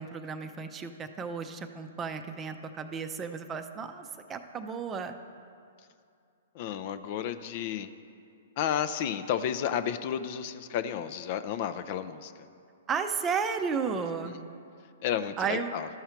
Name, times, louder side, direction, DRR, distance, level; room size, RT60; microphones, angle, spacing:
voice 1, 0.0-5.1 12.9-14.4 15.4-15.7, right 6 dB, 20° right, 8 dB, 0.5 m, -33 dB
voice 2, 6.5-7.9 8.6-12.3 13.9-14.4 15.0-15.9, left 9 dB, 50° left, 11 dB, 0.4 m, -32 dB
13.0 x 5.6 x 4.4 m, 2.5 s
hypercardioid pair, 120°, 0 cm